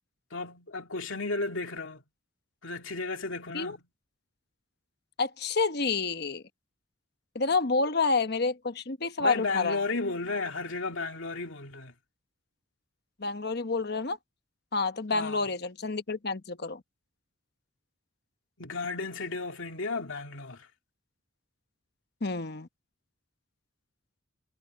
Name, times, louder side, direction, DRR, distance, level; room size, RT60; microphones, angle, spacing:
voice 1, 0.3-2.0 2.6-3.8 9.2-11.9 15.1-15.4 18.6-20.7, left 3 dB, 70° left, 2.4 m, -34 dB
voice 2, 5.2-6.4 7.3-9.8 13.2-14.2 14.7-16.8 22.2-22.7, left 4 dB, 50° left, 1.1 m, -29 dB
head